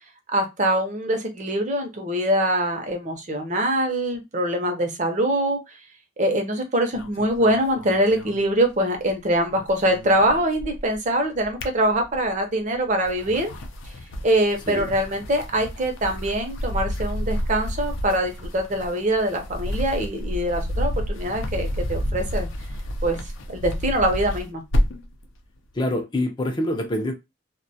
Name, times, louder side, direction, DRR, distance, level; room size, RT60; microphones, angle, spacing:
voice 1, 0.3-5.6 6.2-13.5 14.2-22.5 23.0-23.2 23.5-24.6, right 1 dB, 40° right, 0.6 m, -23 dB
sound 1, 6.9-9.1 9.4-11.0 11.3-12.4 12.9-25.1, equal, 85° left, 0.5 m, -30 dB
voice 2, 25.7-27.1, left 1 dB, 25° left, 0.4 m, -25 dB
2.1 x 2.1 x 2.7 m
head